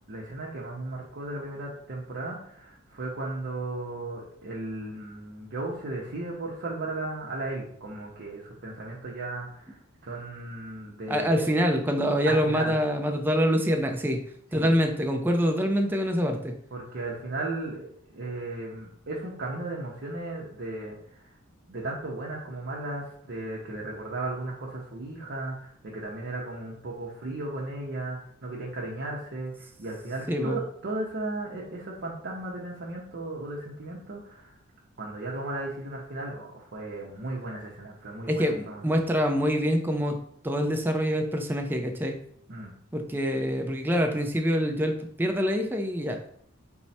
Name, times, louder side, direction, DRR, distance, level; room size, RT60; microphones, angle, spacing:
voice 1, 0.1-9.8 10.0-11.5 12.3-12.7 14.5-14.7 16.7-21.0 21.7-34.5 35.0-39.0 42.5-42.7, right 2 dB, 55° right, -3 dB, 0.7 m, -35 dB
voice 2, 11.1-14.2 14.5-16.5 30.3-30.6 38.3-40.2 40.4-42.2 42.9-46.2, equal, 10° right, 4 dB, 0.4 m, -25 dB
4.5 x 2.1 x 4.0 m, 0.65 s
head